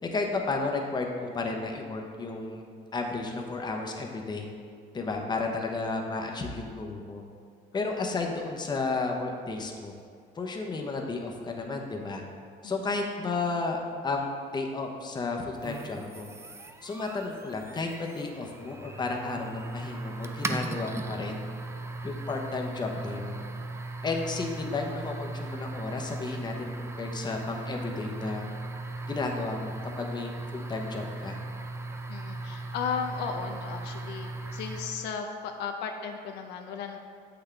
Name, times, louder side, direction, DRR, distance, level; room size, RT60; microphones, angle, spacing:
voice 1, 0.0-2.6 2.9-4.5 4.9-7.2 7.7-9.9 10.3-12.2 12.6-16.3 16.8-21.4 22.0-23.4 24.0-28.5 29.1-31.4, left 3 dB, 25° left, 2 dB, 0.9 m, -33 dB
sound 1, 15.6-35.2, right 2 dB, 15° right, 0.5 m, -38 dB
voice 2, 32.1-37.0, left 6 dB, 85° left, 4 dB, 0.6 m, -35 dB
7.9 x 6.0 x 3.3 m, 2.1 s
cardioid pair, 110°, 17 cm